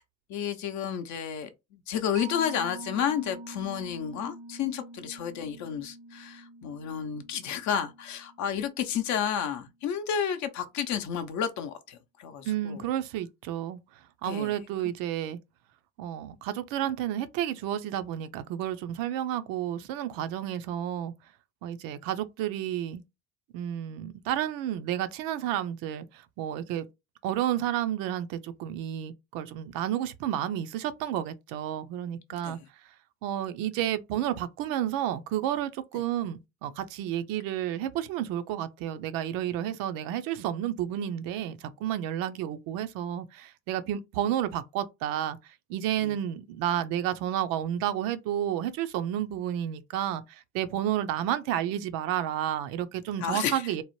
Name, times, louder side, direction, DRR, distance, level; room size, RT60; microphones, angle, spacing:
voice 1, 0.3-12.8 14.2-14.6 14.8-14.9 32.3-32.7 46.0-46.1 53.2-53.6, left 8 dB, 50° left, 0.6 m, -31 dB
Mallet percussion, 2.2-9.2, right 2 dB, 85° right, 1.0 m, -45 dB
voice 2, 12.4-13.8 14.2-15.4 16.0-21.1 21.6-23.0 23.5-26.9 27.2-32.6 33.2-53.8, right 11 dB, 65° right, 0.5 m, -31 dB
3.0 x 2.0 x 3.0 m
hypercardioid pair, 80°, 37 cm